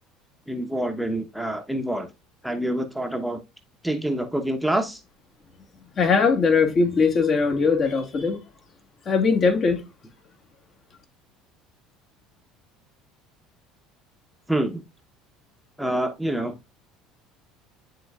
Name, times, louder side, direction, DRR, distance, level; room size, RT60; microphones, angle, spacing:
voice 1, 0.5-2.1 2.4-3.4 3.8-5.0 14.5-14.8 15.8-16.6, right 1 dB, ahead, 0.9 m, -26 dB
voice 2, 6.0-8.4 9.1-9.8, left 5 dB, 45° left, 1.8 m, -20 dB
10.5 x 3.8 x 2.3 m
hypercardioid pair, 70°, 0 cm